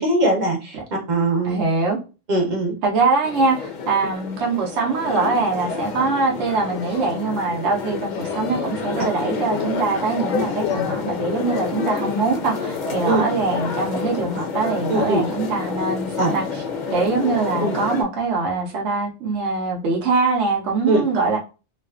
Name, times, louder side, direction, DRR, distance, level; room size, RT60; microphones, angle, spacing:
voice 1, 0.0-1.6 2.3-2.7 13.0-13.2 14.9-15.2 16.2-16.4 17.6-17.8 20.9-21.1, right 2 dB, 45° right, 0.8 m, -21 dB
voice 2, 1.4-2.0 2.8-16.4 16.9-21.4, right 4 dB, 70° right, 0.9 m, -23 dB
sound 1, 3.2-18.0, left 5 dB, 55° left, 0.6 m, -28 dB
2.5 x 2.3 x 2.3 m
omnidirectional pair, 1.2 m